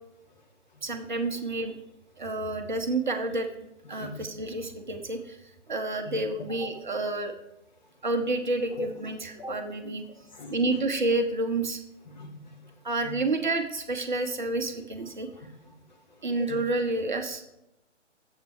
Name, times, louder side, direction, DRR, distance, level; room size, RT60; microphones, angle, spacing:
voice 1, 0.8-1.8 2.2-3.5 3.9-5.4 5.7-7.3 8.0-10.0 10.5-11.8 12.8-15.3 16.2-17.4, right 2 dB, 40° right, 5 dB, 0.7 m, -29 dB
voice 2, 8.8-9.1 9.4-10.0 10.3-10.6 12.1-12.6 13.0-13.1 15.4-15.7 16.4-16.6, left 2 dB, 35° left, 3 dB, 1.1 m, -41 dB
7.3 x 6.6 x 4.7 m, 0.86 s
figure-of-eight pair, 145°, 38 cm